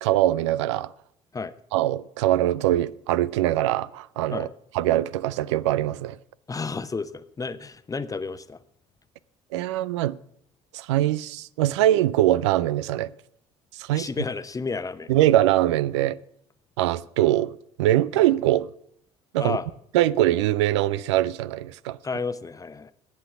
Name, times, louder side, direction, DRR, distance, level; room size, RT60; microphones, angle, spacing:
voice 1, 0.0-0.9 1.7-4.5 4.7-6.2 9.5-10.2 10.7-13.1 13.8-14.1 15.1-16.2 16.8-17.5 17.8-18.7 19.3-19.6 19.9-22.0, right 14 dB, 85° right, 0.4 m, -22 dB
voice 2, 6.5-8.6 13.9-15.1 19.4-19.6 22.0-22.9, left 4 dB, 25° left, 0.9 m, -31 dB
11.5 x 8.4 x 7.3 m
hypercardioid pair, 60°, 14 cm